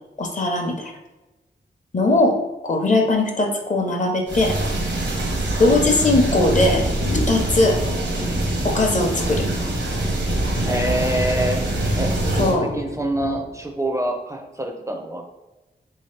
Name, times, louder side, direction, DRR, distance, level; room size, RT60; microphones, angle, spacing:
voice 1, 0.2-0.9 1.9-2.4 2.6-4.6 5.6-6.8 7.1-7.8 8.6-9.5 12.4-12.7, left 2 dB, 40° left, 2 dB, 0.6 m, -19 dB
sound 1, 4.3-12.6, right 1 dB, 85° right, 0.9 m, -24 dB
sound 2, 6.9-13.7, left 1 dB, 85° left, 0.8 m, -32 dB
voice 2, 10.7-11.6 12.0-12.1 12.4-15.2, right 1 dB, 15° right, 3 dB, 0.4 m, -26 dB
3.5 x 2.8 x 3.2 m, 1.1 s
wide cardioid pair, 100°, 18 cm